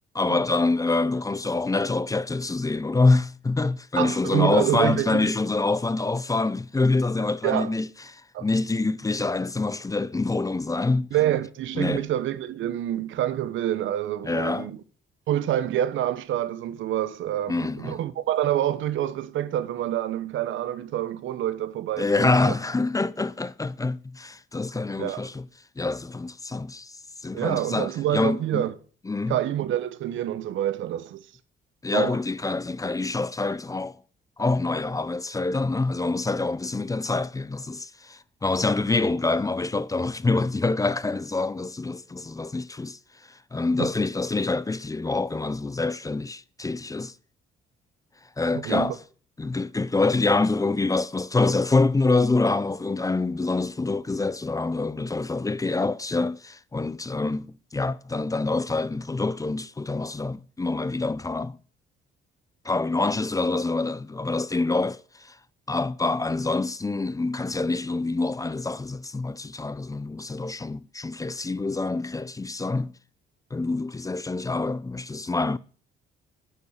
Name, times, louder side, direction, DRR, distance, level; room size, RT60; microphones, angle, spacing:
voice 1, 0.1-7.9 8.1-11.1 11.8-12.0 14.2-14.7 17.5-18.0 22.0-25.4 25.8-27.0 27.2-28.6 29.1-29.4 31.8-34.0 34.4-43.0 43.5-47.1 48.4-49.0 49.4-61.6 62.6-65.3 65.7-72.9 73.5-75.6, left 3 dB, 15° left, 0.6 m, -26 dB
voice 2, 4.0-5.3 7.4-7.7 8.3-8.5 11.1-14.8 15.3-22.5 25.0-25.3 27.3-28.7 29.3-31.3 31.9-32.2 43.8-43.9 48.5-49.0, right 12 dB, 80° right, 1.1 m, -27 dB
10.0 x 7.0 x 8.2 m
cardioid pair, 90°, 20 cm